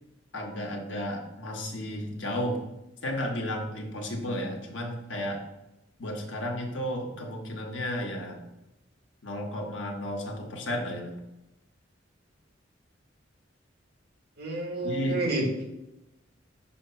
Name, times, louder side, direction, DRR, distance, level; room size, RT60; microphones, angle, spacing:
voice 1, 0.3-2.6 3.0-5.4 6.0-8.4 9.2-11.1 14.8-15.2, left 1 dB, 80° left, 1 dB, 1.2 m, -33 dB
voice 2, 14.4-15.6, right 2 dB, 55° right, -1 dB, 1.7 m, -29 dB
6.2 x 2.9 x 5.6 m, 0.95 s
head